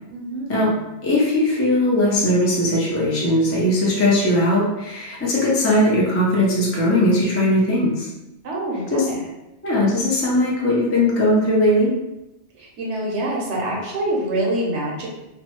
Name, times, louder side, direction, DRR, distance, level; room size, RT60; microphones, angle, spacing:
voice 1, 0.1-0.7 8.4-9.2 12.6-15.1, right 1 dB, 85° right, -2 dB, 1.1 m, -26 dB
voice 2, 1.0-8.1 8.9-9.1 9.6-11.9, left 1 dB, 20° left, -5 dB, 0.3 m, -19 dB
2.7 x 2.1 x 2.9 m, 0.95 s
omnidirectional pair, 1.1 m